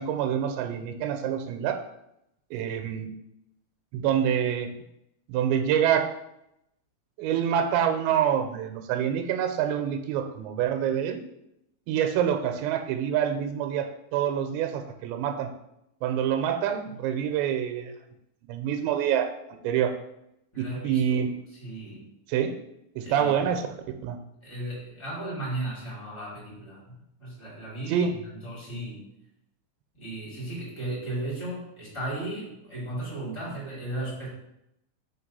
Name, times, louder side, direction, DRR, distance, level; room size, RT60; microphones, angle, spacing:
voice 1, 0.0-1.8 2.5-3.1 3.9-4.7 5.3-6.1 7.2-11.2 11.9-15.5 16.0-17.9 18.5-19.3 19.6-19.9 20.6-21.3 22.3-22.5 23.0-23.7 24.0-24.2 27.9-28.1, right 9 dB, 90° right, 6 dB, 2.9 m, -26 dB
voice 2, 20.5-21.2 21.5-22.0 23.0-23.3 24.4-29.1 29.9-34.3, right 1 dB, 15° left, -7 dB, 1.1 m, -35 dB
6.4 x 2.9 x 5.4 m, 0.81 s
omnidirectional pair, 5.1 m